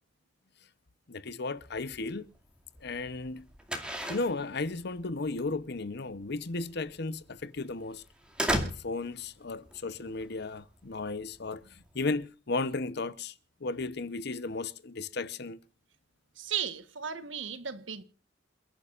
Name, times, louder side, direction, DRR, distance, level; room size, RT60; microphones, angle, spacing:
voice 1, 1.1-2.3 2.8-3.5 4.1-8.0 8.8-13.3 13.6-15.6, left 3 dB, 60° left, 0.9 m, -35 dB
sound 1, 1.6-12.2, equal, 5° right, 2.3 m, -38 dB
voice 2, 16.4-18.0, right 8 dB, 85° right, 1.3 m, -35 dB
28.5 x 11.0 x 2.5 m
head